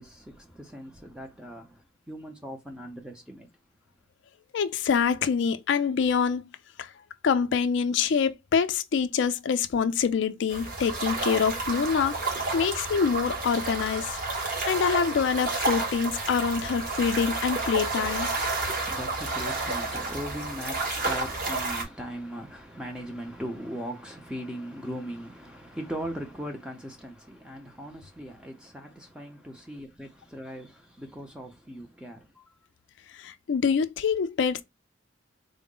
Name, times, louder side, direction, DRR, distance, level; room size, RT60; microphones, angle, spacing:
voice 1, 0.0-3.5 18.4-32.5, equal, 5° right, 0.4 m, -39 dB
voice 2, 4.5-6.4 6.8-6.9 7.2-12.2 12.5-14.2 14.6-18.3 33.1-34.6, left 6 dB, 60° left, 0.3 m, -25 dB
sound 1, 10.5-21.8, right 3 dB, 45° right, 0.9 m, -30 dB
3.7 x 2.0 x 3.7 m
head